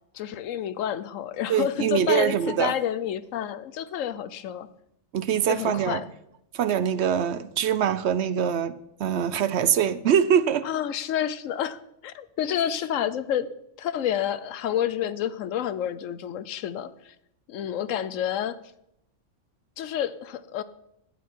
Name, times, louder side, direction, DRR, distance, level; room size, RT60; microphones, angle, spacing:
voice 1, 0.1-4.7 5.5-6.1 10.6-13.5 13.8-17.1 17.5-18.6 19.8-20.6, left 10 dB, 90° left, 1.1 m, -29 dB
voice 2, 1.5-2.7 5.1-6.0 6.5-10.7, right 8 dB, 65° right, 0.9 m, -24 dB
12.0 x 10.0 x 4.6 m
omnidirectional pair, 1.3 m